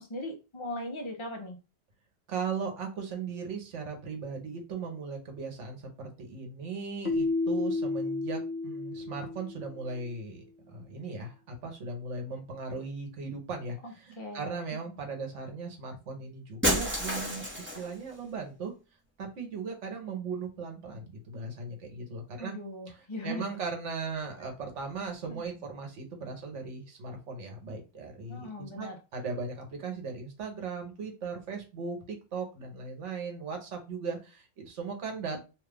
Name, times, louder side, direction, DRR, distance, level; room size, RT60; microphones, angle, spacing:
voice 1, 0.1-1.6 13.8-14.6 22.4-23.5 25.2-25.4 28.3-29.0, left 1 dB, 30° left, 1 dB, 0.7 m, -39 dB
voice 2, 2.3-18.7 19.2-22.5 22.9-35.4, right 4 dB, 80° right, 3 dB, 1.2 m, -38 dB
Keyboard (musical), 7.1-9.9, left 3 dB, 75° left, 1.1 m, -31 dB
Shatter, 16.6-18.0, equal, 10° right, 0.8 m, -29 dB
2.9 x 2.4 x 3.4 m, 0.31 s
omnidirectional pair, 1.2 m